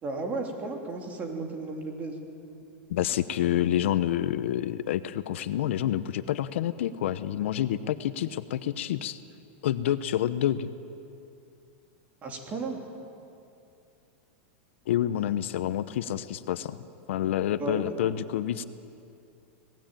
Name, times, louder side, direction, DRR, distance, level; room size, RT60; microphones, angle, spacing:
voice 1, 0.0-2.2 12.2-12.8 17.6-18.2, right 3 dB, 20° right, 2 dB, 3.1 m, -34 dB
voice 2, 2.9-9.2 9.6-10.7 14.9-16.8 17.1-18.6, left 11 dB, 70° left, 13 dB, 0.9 m, -28 dB
26.0 x 19.0 x 9.1 m, 2.6 s
supercardioid pair, 165°, 7 cm